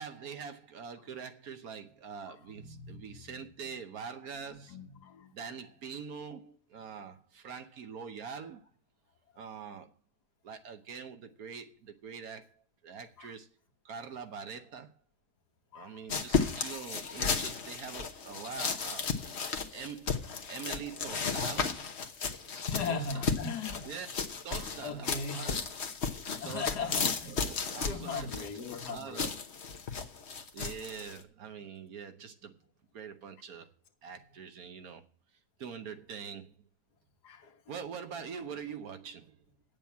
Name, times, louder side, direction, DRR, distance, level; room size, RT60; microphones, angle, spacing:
voice 1, 0.0-4.8 5.3-8.6 9.4-9.9 10.4-13.5 13.8-14.9 15.7-19.3 19.7-21.9 22.9-23.3 23.8-24.1 24.4-25.6 26.4-29.4 30.5-32.6 32.9-33.7 34.0-35.1 35.6-36.5 37.7-39.5, right 6 dB, 65° right, 1.4 m, -44 dB
voice 2, 2.3-3.4 3.6-3.7 4.5-5.3 13.2-13.3 15.7-16.0 16.4-17.2 22.4-23.9 24.6-25.5 26.4-27.5 27.8-29.3 37.2-37.8, left 5 dB, 85° left, 1.9 m, -40 dB
sound 1, 16.1-31.2, left 5 dB, 45° left, 1.2 m, -34 dB
8.8 x 7.0 x 8.5 m
omnidirectional pair, 1.7 m